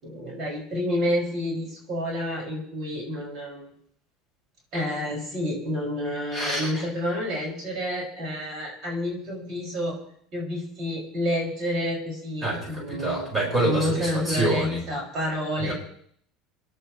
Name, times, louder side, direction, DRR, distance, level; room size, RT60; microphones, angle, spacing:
voice 1, 0.0-3.7 4.7-10.0 10.3-13.3 13.6-15.7, left 1 dB, 50° right, -2 dB, 6.2 m, -29 dB
voice 2, 6.3-6.9 12.4-14.8 15.6-15.7, right 1 dB, 20° right, -2 dB, 5.5 m, -27 dB
28.5 x 11.0 x 3.2 m, 0.63 s
supercardioid pair, 115°, 0 cm